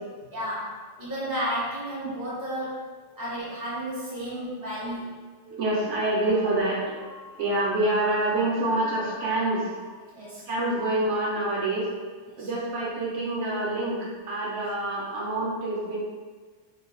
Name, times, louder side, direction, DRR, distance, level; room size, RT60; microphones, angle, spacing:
voice 1, 0.3-0.7 1.0-2.8 3.2-5.1 10.1-10.4 12.3-12.5, equal, 15° right, -9 dB, 1.1 m, -32 dB
voice 2, 5.4-11.9 12.4-16.0, right 2 dB, 75° right, -5 dB, 1.1 m, -27 dB
2.7 x 2.3 x 4.1 m, 1.4 s
omnidirectional pair, 1.3 m